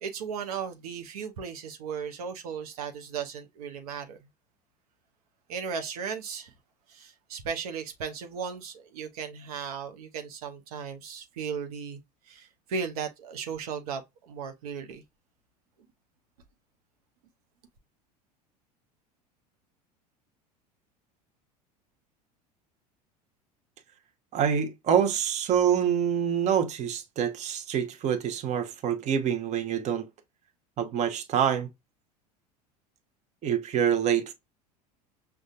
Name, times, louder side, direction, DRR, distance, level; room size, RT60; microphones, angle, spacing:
voice 1, 0.0-4.2 5.5-6.5 6.9-12.0 12.3-15.0, right 6 dB, 65° right, 0.7 m, -36 dB
voice 2, 24.3-30.1 30.8-31.7 33.4-34.3, right 8 dB, 35° right, 0.8 m, -26 dB
6.2 x 2.3 x 2.4 m
figure-of-eight pair, 75°, 21 cm